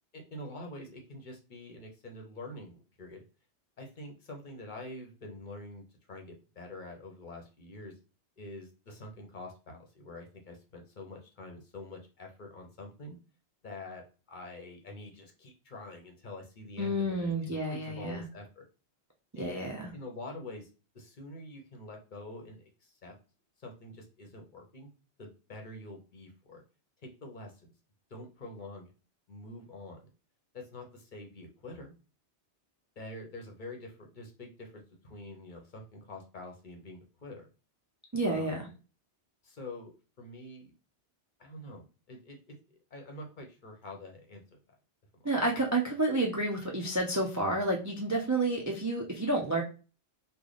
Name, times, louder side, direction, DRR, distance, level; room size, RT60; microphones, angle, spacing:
voice 1, 0.1-3.2 3.8-7.9 8.4-13.2 13.6-18.6 19.3-20.7 20.9-23.1 23.6-24.9 25.2-26.6 27.0-27.7 28.1-28.9 29.3-30.1 30.5-31.9 33.0-37.5 38.3-38.7 39.4-40.7 41.4-42.6 42.9-44.6, left 2 dB, 50° left, 3 dB, 0.8 m, -46 dB
voice 2, 16.8-18.2 19.4-19.9 38.1-38.7 45.2-49.6, right 2 dB, 25° right, -1 dB, 0.4 m, -30 dB
3.2 x 2.2 x 3.9 m, 0.34 s
omnidirectional pair, 1.2 m